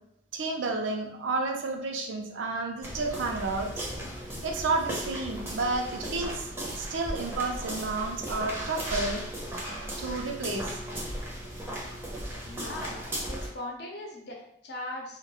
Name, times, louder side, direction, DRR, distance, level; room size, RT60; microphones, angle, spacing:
voice 1, 0.3-3.7 4.4-6.5 6.8-9.2 10.0-10.8, right 3 dB, 80° right, 2 dB, 0.5 m, -31 dB
sound 1, 2.8-13.5, equal, 10° right, 0.5 m, -36 dB
voice 2, 12.4-15.2, left 1 dB, 60° left, -1 dB, 0.6 m, -39 dB
2.3 x 2.1 x 2.9 m, 0.73 s
head